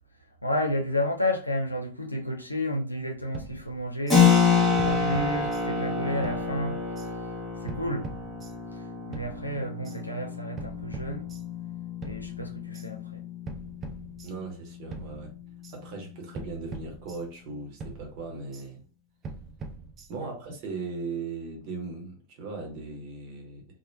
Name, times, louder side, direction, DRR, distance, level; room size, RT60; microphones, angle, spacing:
voice 1, 0.4-4.4 4.7-7.1 7.6-8.1 8.7-8.8 9.1-11.3 12.0-13.2 20.2-20.3, left 1 dB, 85° left, 0.5 m, -31 dB
sound 1, 3.3-4.2 4.8-5.9 6.2-7.1 7.7-8.8 9.1-10.0 10.6-11.7 12.0-12.9 13.5-14.6 14.9-15.8 16.3-17.5 17.8-18.7 19.2-20.4, right 3 dB, 25° right, 0.5 m, -42 dB
Keyboard (musical), 4.1-14.5, left 6 dB, 15° left, 0.9 m, -28 dB
voice 2, 14.2-15.3 15.7-18.8 20.1-23.7, right 3 dB, 45° right, 1.0 m, -38 dB
3.0 x 2.2 x 2.2 m
figure-of-eight pair, 90°, 0 cm